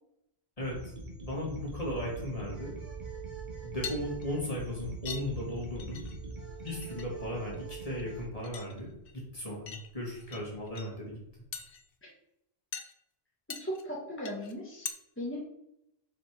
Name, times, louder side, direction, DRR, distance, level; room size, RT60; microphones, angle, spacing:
voice 1, 0.6-0.9 1.2-2.7 3.6-6.0 6.6-11.2, left 1 dB, 35° left, -4 dB, 2.5 m, -36 dB
sound 1, 0.6-8.3, right 3 dB, 50° right, 1.6 m, -44 dB
sound 2, 1.5-6.6, right 6 dB, 80° right, 0.9 m, -46 dB
sound 3, 3.8-4.6 5.1-5.2 5.6-6.3 6.6-7.0 7.3-8.0 8.4-9.2 9.7-10.4 10.7-10.9 11.5-11.9 12.7-12.9 13.5-13.8 14.2-14.5 14.9-15.0, left 7 dB, 60° left, 0.9 m, -42 dB
voice 2, 13.5-15.4, equal, 10° left, -4 dB, 1.2 m, -38 dB
5.4 x 5.1 x 4.7 m, 0.79 s
omnidirectional pair, 1.1 m